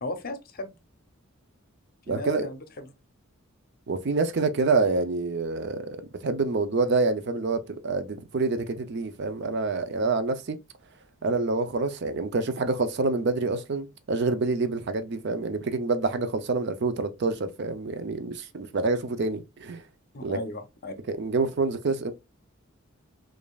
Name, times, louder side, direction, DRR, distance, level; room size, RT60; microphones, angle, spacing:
voice 1, 0.0-0.7 2.1-2.9 20.1-20.9, left 2 dB, 45° left, 0.6 m, -36 dB
voice 2, 2.1-2.5 3.9-10.6 11.2-19.8 20.2-20.4 21.1-22.1, right 3 dB, 55° right, 0.5 m, -27 dB
5.0 x 2.5 x 2.3 m
head